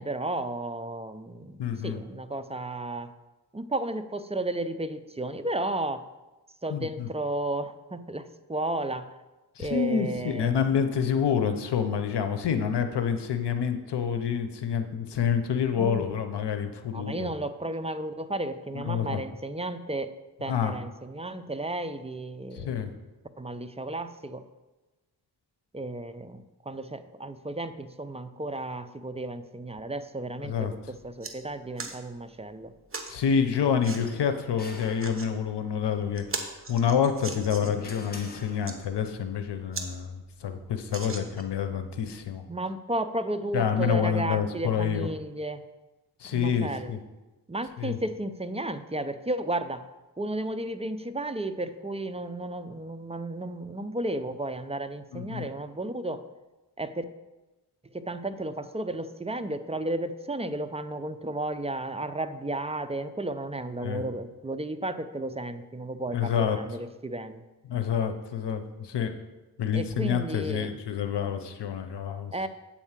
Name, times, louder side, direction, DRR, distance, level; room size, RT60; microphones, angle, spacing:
voice 1, 0.0-3.1 3.5-6.0 6.6-9.1 9.6-10.5 15.7-16.1 16.9-20.1 20.4-22.8 23.4-24.4 25.7-32.7 42.5-45.7 46.3-47.0 47.5-49.9 50.2-56.2 56.8-57.0 57.9-67.4 69.7-70.8 72.3-72.5, right 2 dB, 15° right, 10 dB, 0.5 m, -33 dB
voice 2, 1.6-2.0 6.7-7.1 9.6-17.3 18.7-19.2 20.5-20.7 22.5-22.9 30.4-30.7 33.1-42.4 43.5-45.1 46.2-47.0 47.8-48.0 55.1-55.4 63.8-64.0 66.1-66.6 67.7-69.1 69.6-72.3, left 7 dB, 85° left, 8 dB, 0.8 m, -28 dB
sound 1, 30.5-30.6 31.0-31.3 31.8-32.0 32.9-33.1 33.8-34.0 34.8-35.3 35.8-35.9 36.2-37.8 38.4-38.8 39.3-39.4 39.7-39.9 40.2-40.3 40.9-41.6 42.2-42.3, right 3 dB, 30° right, 1.1 m, -38 dB
sound 2, 34.0-35.7 37.1-39.1, left 2 dB, 25° left, 1.4 m, -46 dB
8.5 x 4.5 x 7.3 m, 1.1 s
cardioid pair, 75°, 40 cm